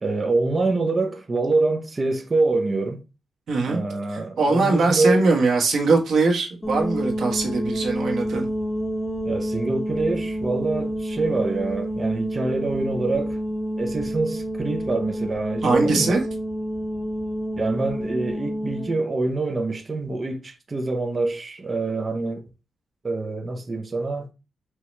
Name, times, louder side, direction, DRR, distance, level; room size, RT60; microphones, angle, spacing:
voice 1, 0.0-3.0 3.7-5.2 9.2-13.4 13.8-16.2 17.6-22.5 23.0-24.3, right 3 dB, 25° right, 0.6 m, -25 dB
voice 2, 3.5-3.8 4.1-8.5 15.6-16.2, right 3 dB, 70° right, 1.4 m, -21 dB
sound 1, 6.6-19.0, equal, 15° left, 1.8 m, -28 dB
4.7 x 2.9 x 3.1 m
wide cardioid pair, 170°, 0 cm